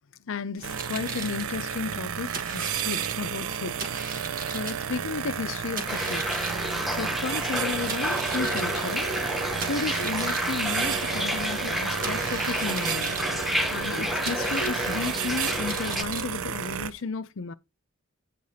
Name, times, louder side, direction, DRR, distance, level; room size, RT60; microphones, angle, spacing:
voice 1, 0.3-3.8 4.5-6.3 6.9-9.0 9.7-13.1 13.7-17.5, left 4 dB, 70° left, 0.6 m, -33 dB
sound 1, 0.6-17.0, right 5 dB, 40° right, 1.3 m, -39 dB
sound 2, 0.6-16.9, right 8 dB, 85° right, 0.5 m, -32 dB
sound 3, 5.9-16.0, equal, ahead, 0.7 m, -30 dB
9.4 x 6.5 x 2.8 m
head